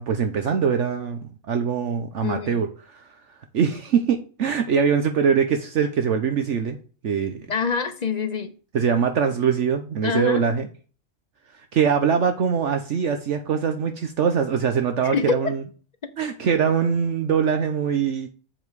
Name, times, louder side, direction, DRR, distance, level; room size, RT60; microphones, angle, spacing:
voice 1, 0.0-2.7 2.9-3.0 3.5-6.8 7.0-7.5 8.7-10.7 11.6-15.6 16.2-18.3, right 7 dB, 65° right, 1.0 m, -23 dB
voice 2, 2.2-2.6 7.5-8.5 10.0-10.4 15.0-15.4, left 5 dB, 40° left, 0.8 m, -25 dB
7.5 x 5.2 x 4.7 m
omnidirectional pair, 1.4 m